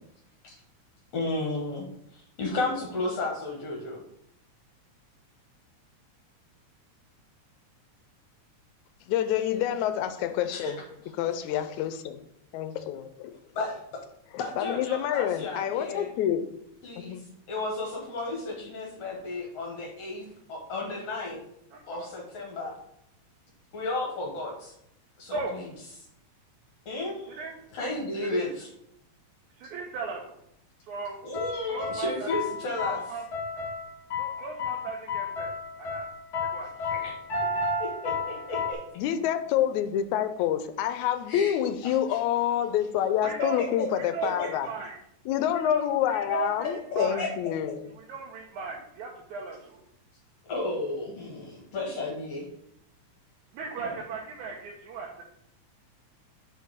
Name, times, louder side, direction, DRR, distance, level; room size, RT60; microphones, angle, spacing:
voice 1, 1.1-4.0 10.5-10.7 13.5-13.8 14.4-16.1 16.8-21.4 21.9-22.8 23.7-24.7 25.2-25.7 26.0-26.1 26.9-27.5 27.7-28.7 31.2-33.0 36.9-37.1 37.8-38.8 41.3-41.6 41.8-42.0 43.6-43.9 44.4-44.5 46.3-47.3 50.4-52.5 53.8-54.0, left 2 dB, 60° left, -1 dB, 2.2 m, -33 dB
voice 2, 9.1-10.8 11.2-12.2 12.5-13.4 14.3-16.5 17.0-17.2 39.0-44.7 45.3-47.9, left 10 dB, 80° left, 10 dB, 2.0 m, -27 dB
voice 3, 21.7-22.1 25.3-25.6 27.4-27.5 28.3-28.5 29.6-30.4 30.9-31.3 31.7-32.3 32.8-33.2 34.2-35.5 35.8-36.1 36.4-36.7 43.2-43.6 44.0-45.0 45.6-47.3 48.0-49.8 53.5-55.2, right 5 dB, 80° right, -1 dB, 2.3 m, -37 dB
sound 1, 31.3-38.7, left 3 dB, 40° left, 1.5 m, -33 dB
5.4 x 4.6 x 6.2 m, 0.74 s
omnidirectional pair, 3.4 m